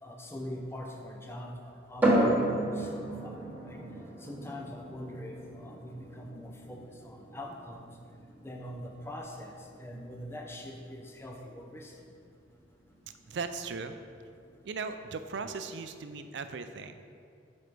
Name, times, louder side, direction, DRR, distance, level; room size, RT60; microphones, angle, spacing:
voice 1, 0.0-3.8 4.2-7.9 8.4-9.5 9.8-11.9, left 1 dB, 15° left, 1 dB, 0.6 m, -43 dB
sound 1, 2.0-15.5, right 1 dB, 10° right, 1.3 m, -35 dB
voice 2, 13.3-14.0 14.6-17.0, right 4 dB, 65° right, 9 dB, 0.4 m, -37 dB
5.2 x 5.0 x 6.0 m, 2.3 s
head